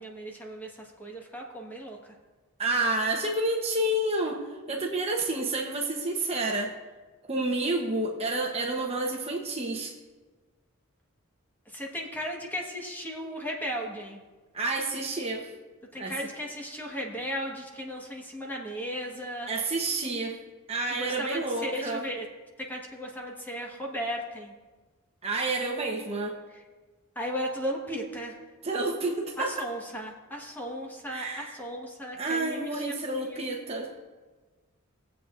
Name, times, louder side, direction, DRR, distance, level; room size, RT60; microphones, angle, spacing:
voice 1, 0.0-2.0 11.7-14.2 15.9-19.5 20.9-22.3 22.6-24.5 27.1-28.4 29.4-32.9 33.2-33.4, equal, 10° left, -1 dB, 1.3 m, -36 dB
voice 2, 2.6-4.4 4.7-6.7 7.3-9.9 14.5-15.5 16.0-16.2 19.5-20.4 20.7-22.0 25.2-26.4 28.6-29.7 31.1-31.5 32.2-33.9, right 2 dB, 30° right, 0 dB, 0.9 m, -29 dB
20.0 x 8.0 x 2.5 m, 1.3 s
head